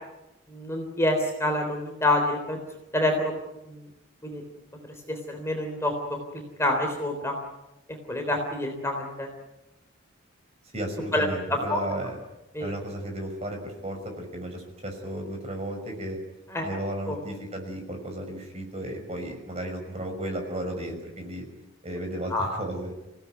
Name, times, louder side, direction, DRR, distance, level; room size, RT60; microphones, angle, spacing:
voice 1, 0.5-2.6 2.9-3.4 3.7-3.9 4.2-4.4 5.1-7.4 8.1-9.3 11.1-11.8 12.5-12.7 16.5-16.7 17.1-17.2 22.3-22.5, left 1 dB, 15° left, 3 dB, 3.6 m, -27 dB
voice 2, 10.6-12.2 12.6-16.2 16.6-21.4 21.8-22.9, right 1 dB, 30° right, 3 dB, 5.9 m, -34 dB
27.5 x 17.5 x 9.5 m, 0.97 s
head